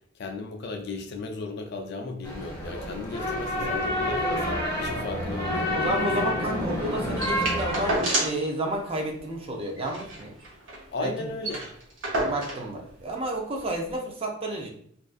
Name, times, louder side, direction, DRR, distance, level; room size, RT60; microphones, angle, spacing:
voice 1, 0.2-5.7 10.9-11.6, left 3 dB, 55° left, 4 dB, 0.3 m, -35 dB
sound 1, 2.2-8.0, left 1 dB, 15° left, 0.7 m, -28 dB
voice 2, 5.7-10.3 11.0-11.3 12.2-14.7, right 1 dB, 30° right, 2 dB, 0.4 m, -31 dB
sound 2, 7.2-8.5 8.8-8.9 9.2-9.4 9.8-10.9 11.1-11.2 11.4-12.7 13.6-13.7, right 1 dB, 70° right, 0.8 m, -29 dB
2.5 x 2.3 x 2.4 m, 0.64 s
head